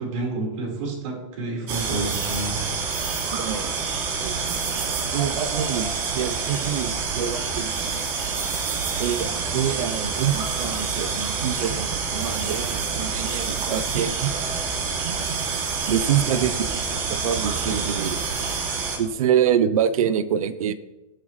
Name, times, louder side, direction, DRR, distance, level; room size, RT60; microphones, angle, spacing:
voice 1, 0.0-2.6 16.2-16.4, right 3 dB, 65° right, -1 dB, 4.4 m, -30 dB
sound 1, 1.7-19.0, right 5 dB, 45° right, 2.6 m, -27 dB
voice 2, 3.3-3.7 4.2-8.0 9.0-14.6 15.0-16.8 17.1-18.2 19.0-20.7, right 9 dB, 90° right, 13 dB, 0.7 m, -26 dB
19.0 x 7.6 x 3.2 m, 1.1 s
supercardioid pair, 145°, 17 cm